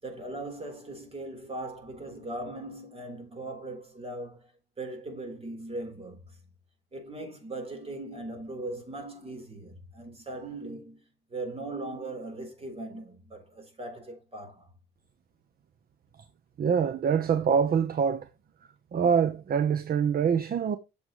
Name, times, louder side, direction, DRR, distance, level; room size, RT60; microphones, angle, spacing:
voice 1, 0.0-4.5 4.8-6.4 6.9-11.0 11.3-14.7, right 2 dB, 30° right, 3.6 m, -39 dB
voice 2, 16.6-18.3 18.9-20.8, right 7 dB, 50° right, 0.8 m, -25 dB
8.0 x 7.0 x 3.0 m
cardioid pair, 90°, 20 cm